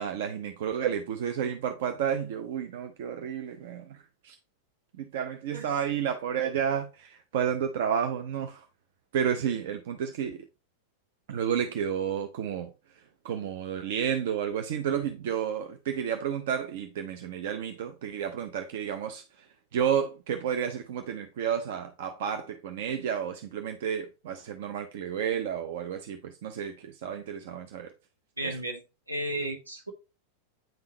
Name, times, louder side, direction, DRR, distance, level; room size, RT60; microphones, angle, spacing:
voice 1, 0.0-4.0 4.2-4.3 5.0-8.7 9.1-10.4 11.3-12.7 13.2-19.2 19.7-27.9, right 8 dB, 55° right, 0.6 m, -31 dB
voice 2, 28.4-28.8 29.1-29.9, right 1 dB, 80° right, 1.3 m, -33 dB
8.9 x 3.8 x 2.9 m
figure-of-eight pair, 90°, 0 cm